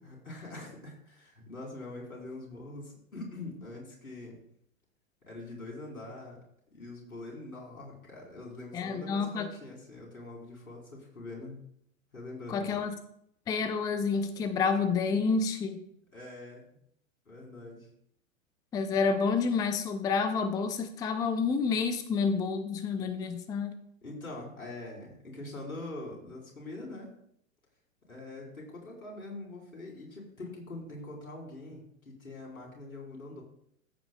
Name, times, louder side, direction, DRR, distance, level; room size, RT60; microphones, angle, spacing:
voice 1, 0.0-4.4 5.3-6.4 6.7-11.6 12.1-12.8 16.1-16.8 17.3-17.9 24.0-27.1 28.1-33.4, left 2 dB, 85° left, -2 dB, 4.3 m, -43 dB
voice 2, 8.7-9.5 12.5-13.0 13.5-15.8 18.7-23.7, left 5 dB, 10° left, 11 dB, 0.4 m, -29 dB
14.5 x 8.6 x 2.3 m, 0.71 s
figure-of-eight pair, 105°, 42 cm